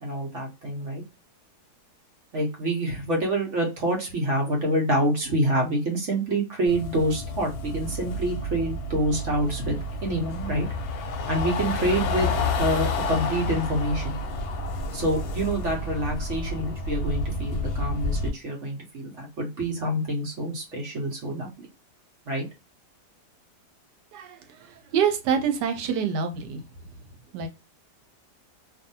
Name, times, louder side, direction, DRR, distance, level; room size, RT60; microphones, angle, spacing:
voice 1, 0.0-1.0 2.3-10.7 11.3-14.2 14.9-21.5 22.3-22.4, right 1 dB, 55° right, 0 dB, 1.1 m, -27 dB
sound 1, 6.7-18.3, left 2 dB, 70° left, 1.0 m, -30 dB
voice 2, 24.9-26.6 27.3-27.5, right 7 dB, 80° right, 6 dB, 1.3 m, -25 dB
2.7 x 2.6 x 2.6 m, 0.28 s
omnidirectional pair, 1.8 m